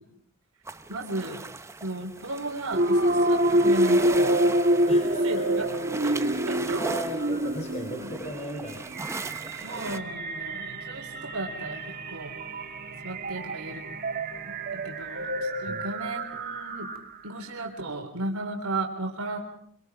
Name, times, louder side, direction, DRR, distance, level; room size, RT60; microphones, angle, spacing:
sound 1, 0.7-10.0, right 2 dB, 15° right, 0.8 m, -38 dB
voice 1, 0.9-1.4 1.8-5.7 6.0-6.8 8.0-8.1 9.6-11.8 12.1-12.3 13.0-13.8 14.5-16.9 17.2-19.4, right 2 dB, 85° right, 1 dB, 3.6 m, -35 dB
sound 2, 2.7-17.3, right 1 dB, 45° right, 1.6 m, -27 dB
voice 2, 4.9-5.7 6.8-8.9 9.2-9.4 15.7-15.8, equal, 30° left, 3 dB, 3.4 m, -37 dB
26.5 x 24.0 x 4.7 m, 0.66 s
head